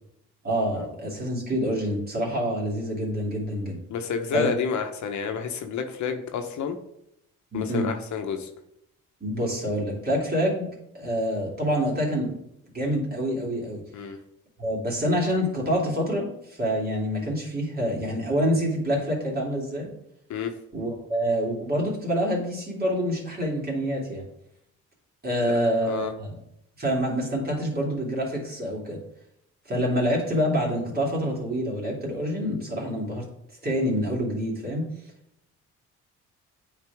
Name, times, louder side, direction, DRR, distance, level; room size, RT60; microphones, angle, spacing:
voice 1, 0.4-3.8 4.3-4.5 7.5-7.9 9.2-10.7 10.9-12.3 12.7-13.8 14.6-19.9 20.7-24.2 25.2-26.3 26.8-29.0 29.7-33.2 33.6-34.9, equal, 30° right, -2 dB, 2.8 m, -26 dB
voice 2, 3.9-6.8 7.5-8.5 13.9-14.2 20.3-20.5 25.4-25.5 25.8-26.1, left 6 dB, 70° left, 6 dB, 1.0 m, -30 dB
9.0 x 4.5 x 3.5 m, 0.77 s
cardioid pair, 90°, 30 cm